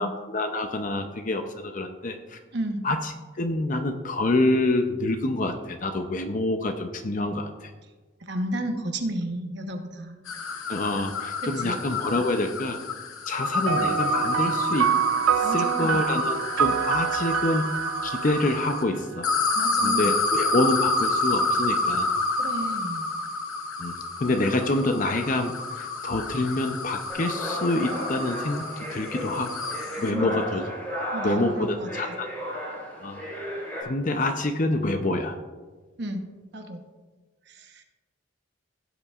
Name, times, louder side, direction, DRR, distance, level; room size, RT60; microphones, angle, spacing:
voice 1, 0.0-2.4 2.8-7.7 10.7-12.8 13.3-14.9 15.4-17.7 18.0-19.3 19.8-22.1 23.8-29.6 30.0-30.7 31.2-32.3 33.0-33.2 33.8-35.4, left 2 dB, 35° left, 6 dB, 0.5 m, -27 dB
voice 2, 2.5-2.8 8.2-10.2 11.4-11.7 15.4-16.0 19.5-20.1 22.4-23.1 30.0-30.3 31.1-31.9 36.0-36.3 36.5-36.8 37.5-37.8, right 1 dB, 55° right, 4 dB, 1.0 m, -32 dB
sound 1, 10.3-18.8 19.2-30.1, left 2 dB, 80° left, 1.0 m, -29 dB
sound 2, 13.7-19.4, right 9 dB, 75° right, 0.3 m, -27 dB
sound 3, 27.1-33.8, equal, 10° left, 2.9 m, -34 dB
16.0 x 8.1 x 2.4 m, 1.3 s
head